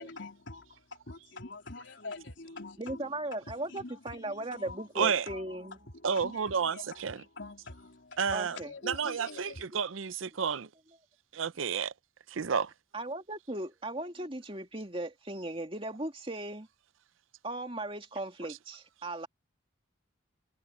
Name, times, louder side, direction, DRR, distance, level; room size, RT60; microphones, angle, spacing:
voice 1, 0.0-3.2 3.4-9.7, left 2 dB, 70° left, 3.7 m, -46 dB
voice 2, 2.8-5.8 8.3-8.7 9.7-9.8 12.9-16.7 17.4-19.3, right 1 dB, 25° right, 2.5 m, -37 dB
voice 3, 5.0-5.3 6.0-7.2 8.2-8.6 8.8-10.7 11.3-11.9 12.3-12.7, right 6 dB, 85° right, 0.6 m, -30 dB
head